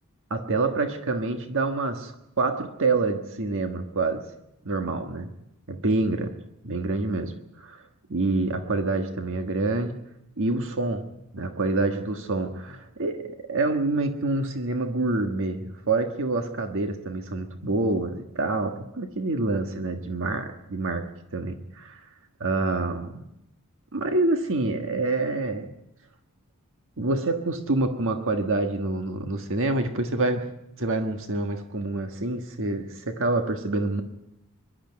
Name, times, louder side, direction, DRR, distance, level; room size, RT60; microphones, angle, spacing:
voice 1, 0.3-4.2 4.6-5.3 5.7-6.4 6.6-7.8 8.1-10.0 10.4-21.1 21.3-22.0 22.4-23.2 23.9-25.7 27.0-30.5 30.8-34.0, right 2 dB, 60° right, 6 dB, 1.5 m, -27 dB
23.5 x 11.5 x 9.7 m, 0.87 s
head